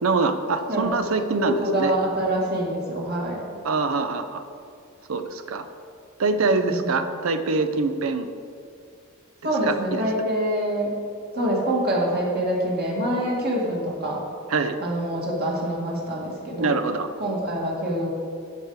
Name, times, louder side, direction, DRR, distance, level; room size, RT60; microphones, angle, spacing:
voice 1, 0.0-1.9 3.6-4.4 5.1-5.7 6.2-8.3 9.4-10.0 14.5-14.8 16.6-17.1, right 3 dB, 80° right, 9 dB, 0.6 m, -24 dB
voice 2, 1.3-3.5 6.4-6.9 9.4-11.0 11.3-14.2 14.8-16.7 17.2-18.1, right 1 dB, 50° right, -3 dB, 2.0 m, -25 dB
12.5 x 4.7 x 4.8 m, 2.3 s
head